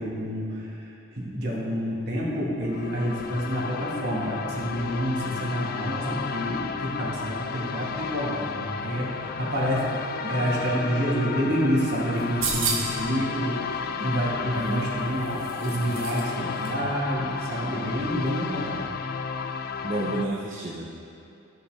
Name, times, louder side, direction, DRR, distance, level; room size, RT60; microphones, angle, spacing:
voice 1, 0.0-18.8, equal, 55° right, -5 dB, 2.1 m, -28 dB
sound 1, 2.6-20.3, left 5 dB, 50° left, 0.4 m, -33 dB
sound 2, 12.2-13.1 14.6-16.3 16.6-16.7, right 5 dB, 90° right, 1.2 m, -31 dB
voice 2, 14.4-15.0 19.8-20.9, right 1 dB, 40° right, -3 dB, 0.7 m, -31 dB
14.0 x 6.7 x 3.6 m, 2.7 s
head